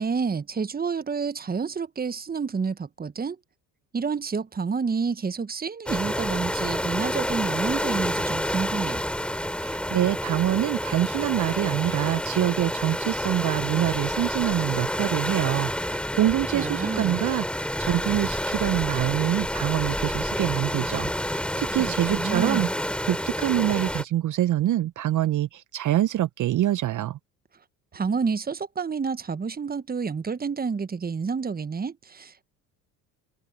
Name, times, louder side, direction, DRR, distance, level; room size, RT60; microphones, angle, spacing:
voice 1, 0.0-3.4 3.9-9.0 16.5-17.2 21.8-22.7 27.9-32.4, right 5 dB, 20° right, 1.3 m, -29 dB
sound 1, 5.9-24.0, equal, ahead, 4.1 m, -29 dB
voice 2, 9.6-22.7 23.0-27.2, right 13 dB, 45° right, 1.0 m, -25 dB
hypercardioid pair, 60°, 42 cm